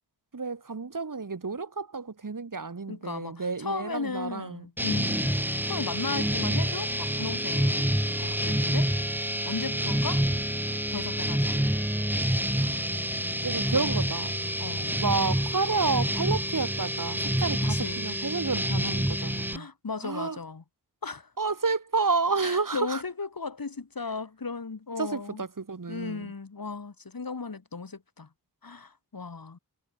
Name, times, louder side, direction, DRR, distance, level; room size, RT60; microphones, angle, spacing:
voice 1, 0.3-4.6 5.1-5.2 12.5-12.8 13.4-14.3 15.0-19.7 20.0-20.4 21.4-23.0 25.0-26.3, right 4 dB, 55° right, 2.9 m, -30 dB
voice 2, 2.9-8.9 9.4-10.2 10.9-11.7 13.7-14.0 14.6-15.0 17.6-18.2 19.5-20.6 21.0-21.3 22.4-25.4 25.9-28.3 28.6-29.6, left 4 dB, 60° left, 4.5 m, -36 dB
sound 1, 4.8-19.6, equal, 5° right, 1.8 m, -28 dB
wide cardioid pair, 90°, 39 cm